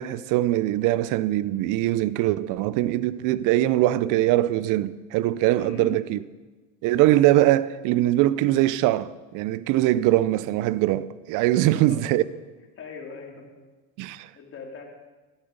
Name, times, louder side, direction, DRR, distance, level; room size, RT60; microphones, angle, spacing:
voice 1, 0.0-6.2 6.8-12.2 14.0-14.3, right 15 dB, 55° right, 0.7 m, -22 dB
voice 2, 5.5-6.0 11.6-12.0 12.8-13.6 14.3-14.8, left 5 dB, 35° left, 3.9 m, -40 dB
13.5 x 12.5 x 5.4 m
supercardioid pair, 100°, 37 cm